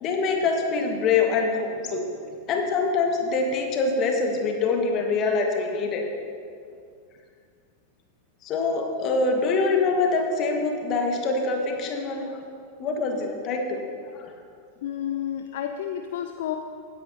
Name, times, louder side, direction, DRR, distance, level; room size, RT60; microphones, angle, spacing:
voice 1, 0.0-6.0 8.4-12.4 12.8-13.8 14.1-14.3, left 4 dB, 35° left, 3 dB, 1.6 m, -25 dB
voice 2, 14.8-16.6, left 10 dB, 55° left, 7 dB, 0.4 m, -30 dB
16.5 x 10.0 x 2.8 m, 2.3 s
figure-of-eight pair, 90°, 0 cm